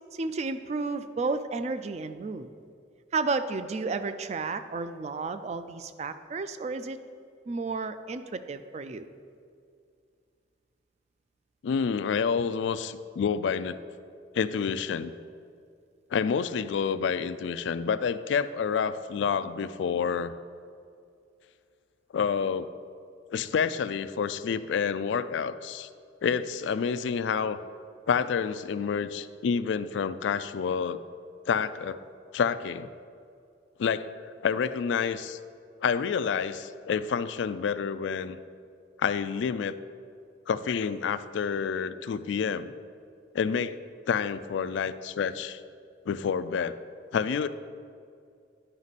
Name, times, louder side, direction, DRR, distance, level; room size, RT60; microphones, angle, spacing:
voice 1, 0.1-2.5 3.1-7.0 7.5-9.1, right 3 dB, 35° right, 10 dB, 0.3 m, -32 dB
voice 2, 11.6-13.8 14.3-15.1 16.1-20.3 22.1-22.7 23.3-25.9 26.2-27.6 28.1-31.0 31.5-32.0 32.3-32.9 33.8-34.1 34.4-35.4 35.8-38.4 39.0-39.8 40.5-42.7 43.3-43.8 44.1-45.6 46.1-46.8 47.1-47.5, left 6 dB, 80° left, 14 dB, 0.3 m, -28 dB
11.0 x 5.2 x 4.1 m, 2.4 s
head